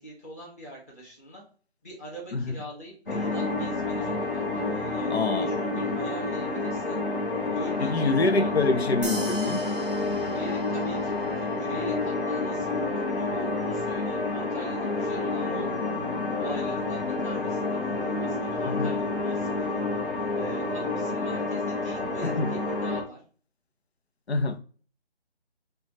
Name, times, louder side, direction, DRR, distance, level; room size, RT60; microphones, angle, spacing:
voice 1, 0.0-1.4 1.8-7.0 7.5-8.9 10.1-15.7 16.3-17.8 18.2-19.9 20.3-23.2, right 1 dB, 15° left, 1.0 m, -43 dB
sound 1, 3.1-23.0, left 3 dB, 55° left, 1.1 m, -29 dB
voice 2, 5.1-5.5 7.8-9.6 18.6-18.9 22.2-22.5 24.3-24.6, left 3 dB, 75° left, 0.8 m, -26 dB
sound 2, 9.0-11.8, right 2 dB, 25° right, 0.6 m, -41 dB
5.1 x 2.4 x 2.9 m
figure-of-eight pair, 160°, 33 cm